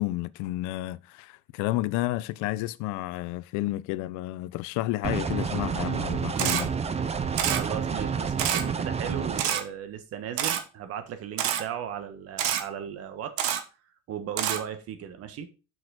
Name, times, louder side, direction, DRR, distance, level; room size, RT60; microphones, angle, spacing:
voice 1, 0.0-6.7, left 17 dB, 70° left, 0.6 m, -31 dB
sound 1, 5.0-9.4, right 6 dB, 20° right, 0.8 m, -29 dB
Camera, 6.4-6.6 7.4-7.6 8.4-8.6 9.4-9.6 10.4-10.6 11.4-11.6 12.4-12.6 13.4-13.6 14.4-14.6, right 10 dB, 90° right, 1.3 m, -26 dB
voice 2, 7.0-13.5 14.1-15.5, right 9 dB, 50° right, 1.6 m, -37 dB
6.5 x 6.2 x 4.9 m
cardioid pair, 130°, 31 cm